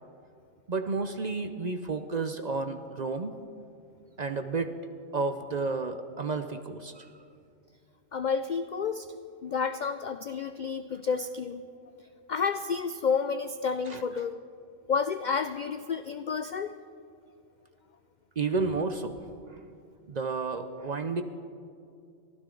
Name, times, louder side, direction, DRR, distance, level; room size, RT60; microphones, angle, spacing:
voice 1, 0.7-3.4 4.2-4.7 5.1-7.1 13.9-14.0 18.4-19.2 19.5-19.6 20.1-21.2, right 4 dB, 45° right, 9 dB, 0.6 m, -31 dB
voice 2, 8.1-9.1 9.4-11.7 12.3-14.4 14.9-16.7, left 5 dB, 65° left, 11 dB, 0.4 m, -30 dB
23.5 x 15.5 x 3.9 m, 2.5 s
omnidirectional pair, 1.3 m